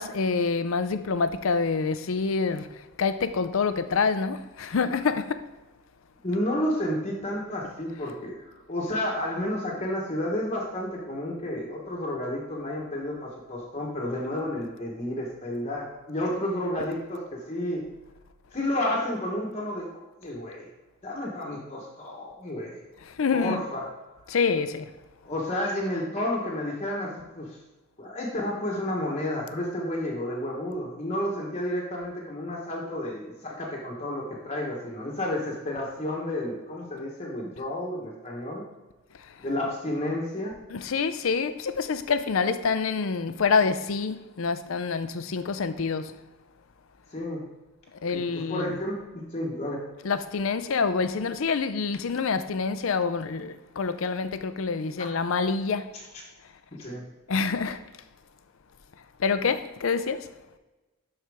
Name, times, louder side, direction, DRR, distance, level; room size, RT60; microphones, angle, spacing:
voice 1, 0.0-5.4 23.1-23.6 24.3-24.9 40.7-46.1 48.0-48.8 50.0-55.9 57.3-57.8 59.2-60.3, left 5 dB, 70° left, 0.5 m, -27 dB
voice 2, 6.2-17.8 18.5-20.7 21.0-22.8 23.3-23.9 25.2-27.6 28.0-38.6 39.4-40.6 47.1-47.4 48.1-49.8 55.9-56.0 56.7-57.0, left 1 dB, 30° left, 1.2 m, -31 dB
12.5 x 4.4 x 3.5 m
head